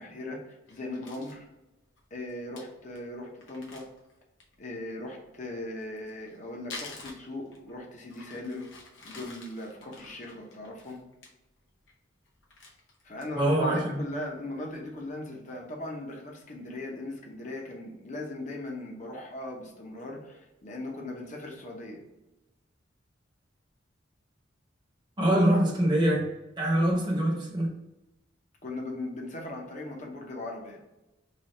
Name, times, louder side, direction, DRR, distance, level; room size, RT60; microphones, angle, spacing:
voice 1, 0.0-1.5 2.1-3.9 4.6-8.7 9.0-11.0 13.0-13.5 14.0-22.0 28.6-30.8, left 2 dB, 40° left, 0 dB, 0.8 m, -39 dB
Crumpling crinkling, 0.7-1.4 2.0-2.1 2.3-2.4 2.6-2.7 3.0-3.1 3.4-4.7 5.8-7.7 8.1-11.3 11.7-12.0 12.3-13.5 13.9-14.0 14.4-14.8, left 3 dB, 75° left, 0.8 m, -48 dB
voice 2, 13.4-14.0 25.2-26.3 26.6-27.7, right 1 dB, 25° right, -2 dB, 0.9 m, -24 dB
3.2 x 2.4 x 4.0 m, 0.95 s
head